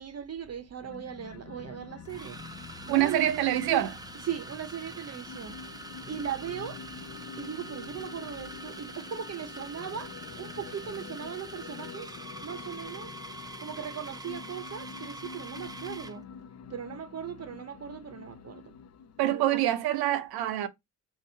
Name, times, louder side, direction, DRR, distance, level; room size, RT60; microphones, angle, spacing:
voice 1, 0.0-2.4 2.9-3.2 4.3-5.6 6.1-6.8 7.4-12.1 12.4-13.1 13.6-16.2 16.7-18.7 19.2-19.6, right 8 dB, 45° right, 0.7 m, -38 dB
sound 1, 0.8-19.4, left 7 dB, 45° left, 0.5 m, -47 dB
sound 2, 0.9-1.0 2.1-16.2, right 1 dB, 10° right, 0.6 m, -44 dB
voice 2, 2.9-4.0 19.2-20.7, right 13 dB, 80° right, 0.7 m, -26 dB
3.6 x 2.8 x 4.4 m
supercardioid pair, 60°, 37 cm